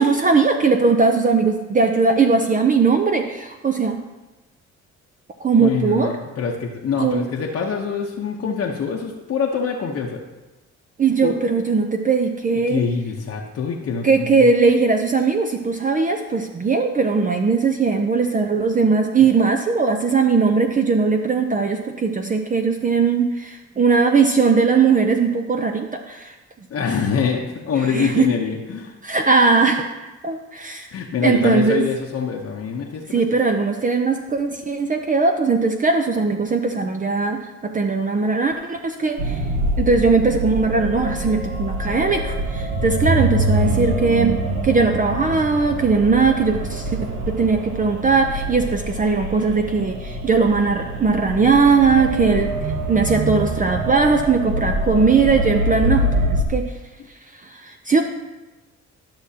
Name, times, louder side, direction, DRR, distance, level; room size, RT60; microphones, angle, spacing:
voice 1, 0.0-4.0 5.4-6.1 7.0-7.2 11.0-12.8 14.0-26.3 27.9-28.3 29.0-29.9 30.2-30.9 31.2-31.8 33.1-39.4 39.8-44.3 44.6-52.5 52.9-56.6 57.4-58.0, right 4 dB, 25° right, 5 dB, 0.5 m, -19 dB
voice 2, 5.6-10.2 11.2-11.4 12.7-14.3 26.7-29.0 30.9-33.2, left 6 dB, 55° left, -1 dB, 0.9 m, -24 dB
sound 1, 39.2-56.4, right 1 dB, 80° right, 1.2 m, -25 dB
12.0 x 6.0 x 2.8 m, 1.1 s
cardioid pair, 90°, 30 cm